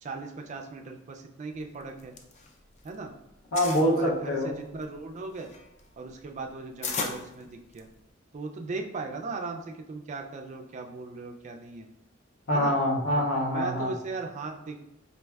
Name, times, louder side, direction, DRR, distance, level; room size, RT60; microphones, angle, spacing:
voice 1, 0.0-2.1 2.8-3.1 3.9-5.5 6.0-7.9 8.3-11.9 12.5-12.7 13.5-14.8, right 3 dB, 35° right, 4 dB, 0.3 m, -38 dB
sound 1, 1.8-3.0 3.3-3.9 4.5-8.1, left 4 dB, 35° left, 0.4 m, -36 dB
voice 2, 3.5-4.5 12.5-13.9, equal, 85° left, -1 dB, 0.7 m, -25 dB
4.2 x 2.5 x 2.3 m, 0.90 s
head